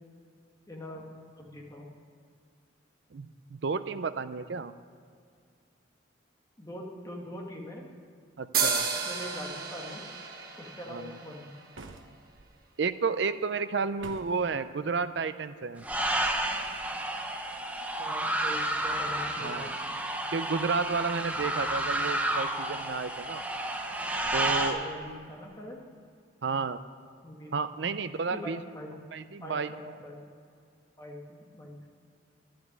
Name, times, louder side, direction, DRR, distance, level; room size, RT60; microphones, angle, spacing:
voice 1, 0.7-1.1 1.3-1.9 6.6-7.9 9.0-10.0 10.6-11.5 18.0-19.9 24.7-25.8 27.2-28.0 28.3-29.0 29.4-30.2 31.0-31.8, equal, 15° left, -1 dB, 1.7 m, -42 dB
voice 2, 3.1-4.7 8.4-8.9 10.9-11.2 12.8-15.8 19.4-19.7 20.3-23.4 24.3-24.8 26.4-26.8 27.5-28.6 29.1-29.7, right 4 dB, 65° right, 12 dB, 0.5 m, -31 dB
sound 1, 8.5-12.1, right 5 dB, 45° right, 1.3 m, -32 dB
sound 2, 11.7-12.5 14.0-14.5, right 3 dB, 85° right, 1.0 m, -47 dB
sound 3, 15.8-24.7, right 1 dB, 5° right, 0.9 m, -31 dB
11.0 x 7.7 x 9.5 m, 2.3 s
head